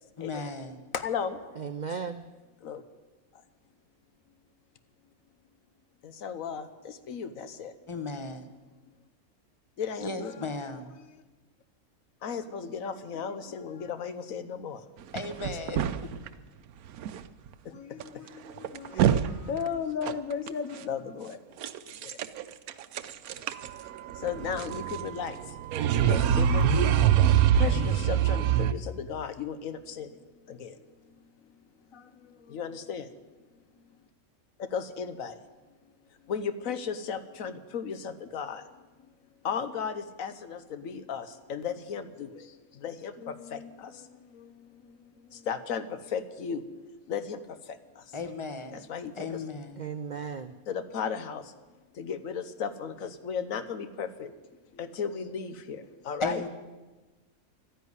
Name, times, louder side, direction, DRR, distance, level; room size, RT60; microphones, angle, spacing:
voice 1, 0.2-0.8 7.9-8.5 10.0-10.9 15.1-16.1 48.1-48.8 49.2-49.9 56.2-56.5, left 3 dB, 25° left, 8 dB, 1.0 m, -35 dB
voice 2, 1.0-1.4 2.6-2.8 6.2-6.6 7.1-7.7 9.8-10.4 12.2-14.8 17.7-18.3 18.6-19.0 19.5-21.4 24.2-25.4 25.9-27.0 27.6-30.1 30.5-30.7 32.5-33.1 34.7-35.3 36.3-38.6 39.4-42.3 42.8-43.9 45.5-45.9 46.1-46.6 47.1-47.4 48.9-49.3 50.7-51.4 52.0-54.3 54.8-56.4, left 6 dB, 70° left, 12 dB, 1.3 m, -35 dB
voice 3, 1.6-2.3 49.8-50.5, right 6 dB, 65° right, 10 dB, 0.4 m, -35 dB
sound 1, 15.2-16.3 17.0-17.2 17.5-17.6 18.0-18.1 18.5-19.3 19.6-19.7 20.0-20.5 21.6-22.4 22.7-28.7, right 9 dB, 80° right, 1.1 m, -25 dB
12.5 x 10.5 x 9.6 m, 1.2 s
omnidirectional pair, 1.5 m